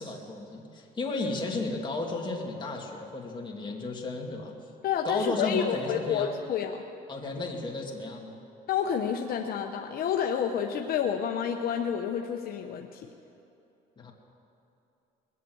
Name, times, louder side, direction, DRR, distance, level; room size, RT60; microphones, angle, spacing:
voice 1, 0.0-4.5 5.0-6.3 7.1-8.4 14.0-14.1, left 3 dB, 30° left, -1 dB, 2.5 m, -33 dB
voice 2, 4.8-6.8 8.7-13.1, left 8 dB, 65° left, 3 dB, 0.9 m, -29 dB
21.5 x 8.3 x 7.8 m, 2.8 s
cardioid pair, 110°, 17 cm